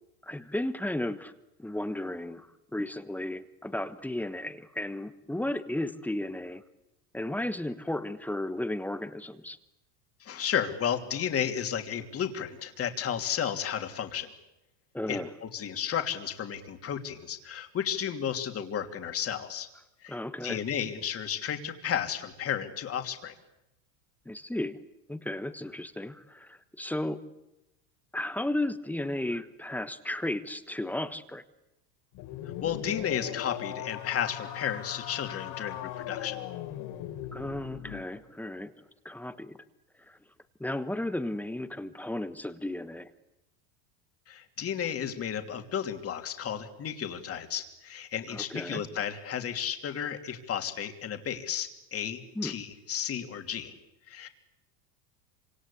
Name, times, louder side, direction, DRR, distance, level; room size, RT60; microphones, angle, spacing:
voice 1, 0.2-1.3 1.6-6.6 7.1-9.6 14.9-15.3 20.1-20.6 24.2-24.8 25.1-27.3 28.1-31.4 37.3-38.7 39.0-39.6 40.1-40.2 40.6-43.1 48.3-48.8 52.3-52.6, left 1 dB, 5° left, 11 dB, 1.3 m, -34 dB
voice 2, 10.2-14.3 15.1-19.7 20.0-23.3 32.6-36.4 44.3-53.7 54.1-54.3, left 8 dB, 30° left, 5 dB, 3.0 m, -33 dB
sound 1, 32.1-38.1, left 12 dB, 55° left, 3.9 m, -39 dB
26.5 x 26.0 x 8.6 m, 0.91 s
supercardioid pair, 135°, 47 cm